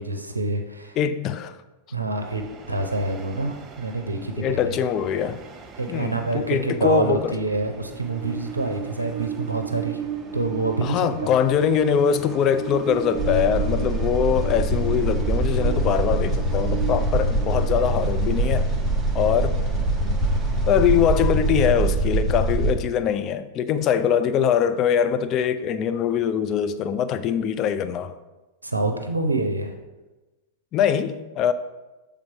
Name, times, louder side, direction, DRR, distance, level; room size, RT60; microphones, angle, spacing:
voice 1, 0.0-1.0 1.9-4.8 5.8-10.0 10.3-11.3 28.6-29.7, right 2 dB, 90° right, 0.5 m, -26 dB
voice 2, 1.0-1.6 4.4-5.4 5.9-7.4 10.8-18.7 19.1-20.2 20.7-28.1 30.7-31.5, left 8 dB, 35° left, 0.4 m, -23 dB
Train, 2.1-21.6, right 7 dB, 25° right, 0.7 m, -37 dB
sound 1, 13.1-22.7, right 2 dB, 10° left, 1.2 m, -23 dB
7.3 x 3.5 x 4.5 m
figure-of-eight pair, 95°, 0 cm